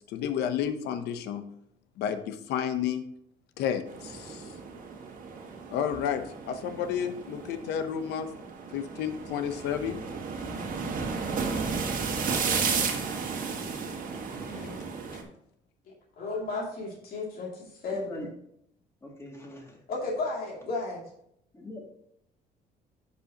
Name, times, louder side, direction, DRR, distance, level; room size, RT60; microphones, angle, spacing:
voice 1, 0.1-1.4 2.0-3.0 3.6-4.4 5.7-8.3 8.7-10.0 12.7-12.8, left 8 dB, 80° left, 10 dB, 0.9 m, -31 dB
sound 1, 3.9-15.2, right 5 dB, 55° right, 1.7 m, -33 dB
voice 2, 14.5-14.8 16.2-18.3 19.9-21.1, left 3 dB, 60° left, -3 dB, 2.6 m, -34 dB
voice 3, 19.0-19.8 21.5-21.9, left 1 dB, 15° left, -1 dB, 2.4 m, -42 dB
11.5 x 5.4 x 2.9 m, 0.72 s
cardioid pair, 110°, 17 cm